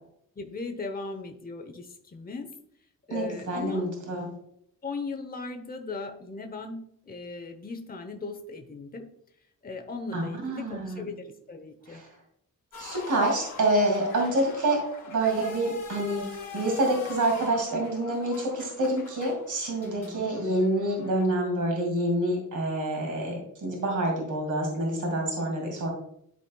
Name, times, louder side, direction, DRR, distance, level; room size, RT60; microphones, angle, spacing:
voice 1, 0.4-2.5 3.1-3.9 4.8-6.8 7.1-9.1 9.6-12.0 19.8-20.3, left 3 dB, 25° left, 5 dB, 0.8 m, -38 dB
voice 2, 3.1-4.3 10.1-11.0 11.9-12.1 12.8-14.8 15.1-16.3 16.5-25.9, right 1 dB, 55° right, 0 dB, 2.4 m, -27 dB
sound 1, 12.7-21.2, left 4 dB, 55° left, 2.5 m, -44 dB
12.0 x 4.1 x 2.3 m, 0.71 s
cardioid pair, 110°, 36 cm